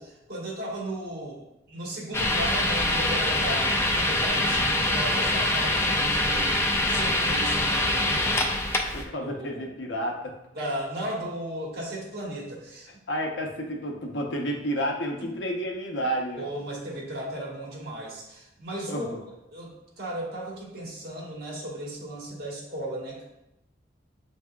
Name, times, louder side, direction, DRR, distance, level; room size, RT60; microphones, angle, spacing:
voice 1, 0.0-8.4 9.2-9.6 10.5-12.9 15.2-15.3 16.4-19.1 19.5-23.2, right 1 dB, 55° right, -4 dB, 1.3 m, -35 dB
sound 1, 2.1-9.0, left 1 dB, 15° left, 0.4 m, -24 dB
voice 2, 8.9-10.4 13.1-16.4 18.9-19.2, equal, 70° left, 1 dB, 0.7 m, -30 dB
7.6 x 2.7 x 2.2 m, 0.88 s
head